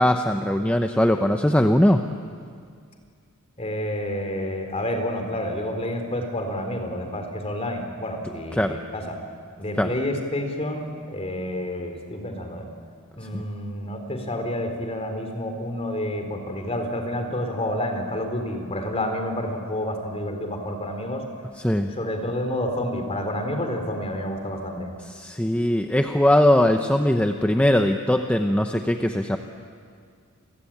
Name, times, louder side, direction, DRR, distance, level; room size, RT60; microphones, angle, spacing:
voice 1, 0.0-2.0 8.6-8.8 9.8-9.9 13.3-13.4 21.6-21.9 25.1-29.4, left 1 dB, 5° left, 5 dB, 0.9 m, -20 dB
voice 2, 3.6-9.1 9.6-12.7 13.2-21.2 22.0-24.9, left 1 dB, 30° left, 5 dB, 3.8 m, -29 dB
29.5 x 22.5 x 8.8 m, 2.2 s
head